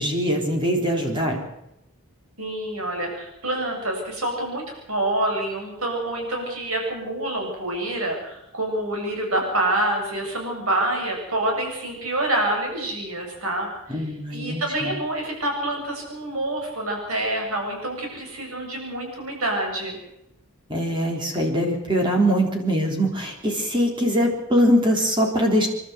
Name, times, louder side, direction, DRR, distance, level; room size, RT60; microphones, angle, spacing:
voice 1, 0.0-1.4 13.9-14.9 20.7-25.7, equal, 20° right, 1 dB, 3.8 m, -22 dB
voice 2, 2.4-20.0, right 1 dB, 75° right, 2 dB, 7.3 m, -27 dB
27.0 x 12.5 x 8.2 m, 0.85 s
head